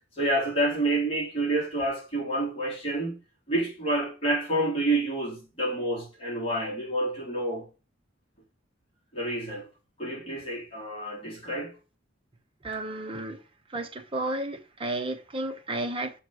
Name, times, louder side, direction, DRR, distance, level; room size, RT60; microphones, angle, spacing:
voice 1, 0.1-3.2 3.5-7.7 9.1-9.7 10.0-11.8, right 1 dB, 30° left, 3.6 m, -28 dB
voice 2, 12.6-13.4 13.7-16.1, right 2 dB, 25° right, 0.9 m, -32 dB
7.0 x 4.5 x 6.3 m
head